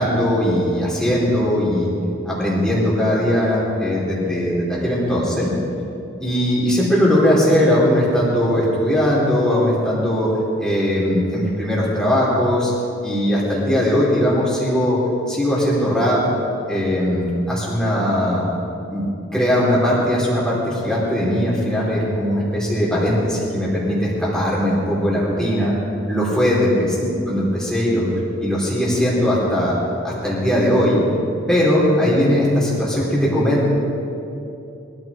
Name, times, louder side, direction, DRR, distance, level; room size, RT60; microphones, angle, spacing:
voice 1, 0.0-1.9 2.2-5.5 6.2-10.3 10.6-12.7 13.0-15.0 15.3-16.2 16.7-18.4 18.9-25.7 26.1-28.1 28.4-29.7 30.0-31.0 31.5-33.7, equal, 5° left, -7 dB, 4.3 m, -19 dB
24.0 x 14.0 x 3.8 m, 2.8 s
head